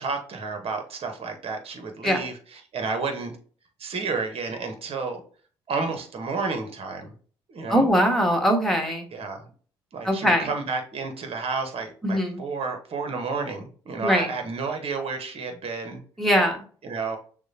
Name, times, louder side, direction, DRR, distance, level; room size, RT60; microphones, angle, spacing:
voice 1, 0.0-3.4 3.8-5.2 5.7-7.1 7.5-7.9 9.1-9.5 9.9-16.0 16.8-17.2, right 4 dB, 50° right, 5 dB, 1.2 m, -31 dB
voice 2, 7.7-9.1 10.0-10.5 12.0-12.4 14.0-14.3 16.2-16.6, equal, ahead, 3 dB, 1.5 m, -21 dB
6.2 x 2.3 x 2.8 m, 0.43 s
hypercardioid pair, 50°, 13 cm